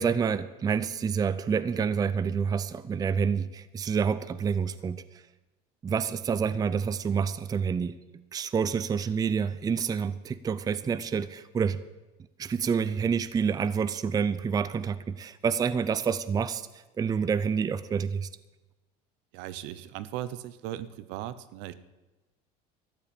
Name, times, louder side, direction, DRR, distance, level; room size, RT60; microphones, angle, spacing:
voice 1, 0.0-5.2 5.8-8.0 8.3-11.8 12.4-18.3, right 6 dB, 20° right, 14 dB, 0.5 m, -28 dB
voice 2, 19.3-21.7, right 12 dB, 65° right, 14 dB, 1.0 m, -38 dB
13.5 x 8.8 x 8.8 m, 1.1 s
supercardioid pair, 120°, 20 cm